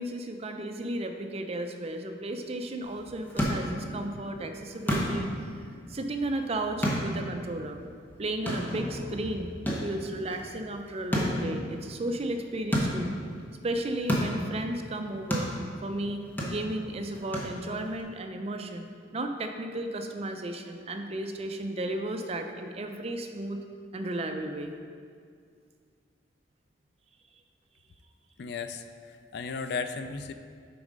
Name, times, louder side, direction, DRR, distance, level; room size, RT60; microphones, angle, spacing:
voice 1, 0.0-5.5 5.9-7.8 8.2-9.5 9.8-13.1 13.6-15.5 15.8-18.9 19.1-23.6 23.9-24.7, right 1 dB, 35° right, 5 dB, 0.5 m, -34 dB
sound 1, 2.8-18.0, equal, 10° left, 0.8 m, -33 dB
voice 2, 28.4-28.8 29.3-30.3, left 5 dB, 65° left, 9 dB, 0.4 m, -34 dB
6.9 x 4.1 x 5.1 m, 2.1 s
head